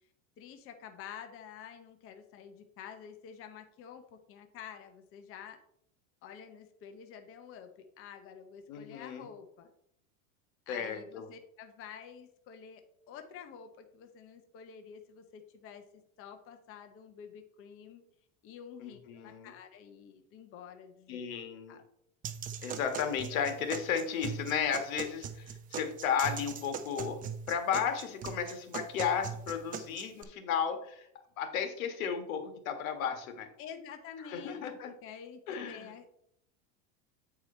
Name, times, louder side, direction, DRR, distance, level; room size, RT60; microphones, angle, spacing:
voice 1, 0.4-5.6 6.2-9.7 10.7-12.8 13.1-15.8 16.2-18.0 18.4-21.2 21.7-21.8 33.6-36.1, left 7 dB, 35° left, 6 dB, 0.8 m, -49 dB
voice 2, 8.7-9.3 10.7-11.3 18.8-19.5 21.1-21.8 22.6-27.2 27.5-31.1 31.4-33.5 34.3-34.9 35.5-35.9, left 7 dB, 85° left, 7 dB, 1.5 m, -34 dB
sound 1, 22.2-30.2, right 7 dB, 20° right, 0.5 m, -41 dB
8.7 x 4.8 x 4.3 m, 0.73 s
supercardioid pair, 140°, 40 cm